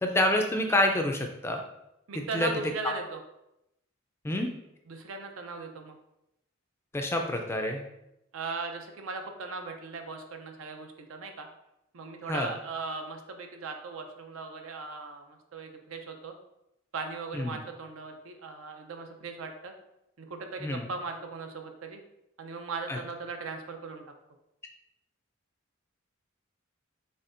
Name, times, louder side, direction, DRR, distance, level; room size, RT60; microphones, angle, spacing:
voice 1, 0.0-1.6 2.2-2.5 4.2-4.5 6.9-7.8 12.3-12.5 17.3-17.6 20.6-20.9 22.9-23.0, left 1 dB, 10° left, 3 dB, 0.3 m, -27 dB
voice 2, 2.1-3.2 4.9-6.0 8.3-11.5 11.9-16.3 16.9-19.7 20.2-22.0 22.4-24.0, right 4 dB, 85° right, 5 dB, 0.6 m, -38 dB
4.2 x 3.7 x 2.5 m, 0.85 s
head